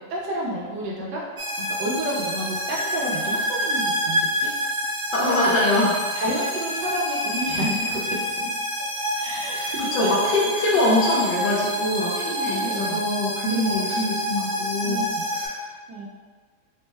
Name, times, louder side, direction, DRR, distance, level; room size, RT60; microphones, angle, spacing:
voice 1, 0.1-1.3 1.7-4.5 5.2-5.3 6.1-8.5 9.1-10.1 10.7-10.9 12.0-13.1 13.5-14.0 14.8-15.2 15.5-16.1, right 1 dB, 85° right, -4 dB, 1.3 m, -30 dB
sound 1, 1.4-15.5, equal, 60° right, 0.4 m, -27 dB
voice 2, 5.1-6.0 9.5-15.0 15.3-15.6, left 1 dB, 85° left, -6 dB, 1.4 m, -24 dB
4.3 x 2.1 x 3.3 m, 1.5 s
omnidirectional pair, 1.9 m